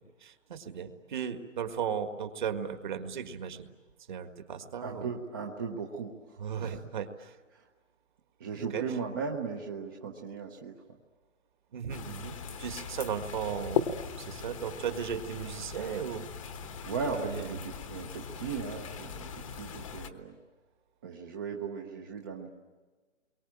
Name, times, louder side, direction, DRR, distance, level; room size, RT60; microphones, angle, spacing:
voice 1, 0.2-3.7 4.1-5.1 6.4-7.4 8.6-8.9 11.7-16.3 17.3-17.6, right 7 dB, 40° right, 8 dB, 1.7 m, -36 dB
voice 2, 4.8-6.1 6.6-6.8 7.5-7.6 8.4-10.7 16.8-20.4 21.0-22.5, right 5 dB, 20° right, 1 dB, 0.8 m, -37 dB
sound 1, 11.9-20.1, left 6 dB, 25° left, 1.1 m, -39 dB
29.0 x 23.0 x 8.7 m, 1.3 s
hypercardioid pair, 165°, 37 cm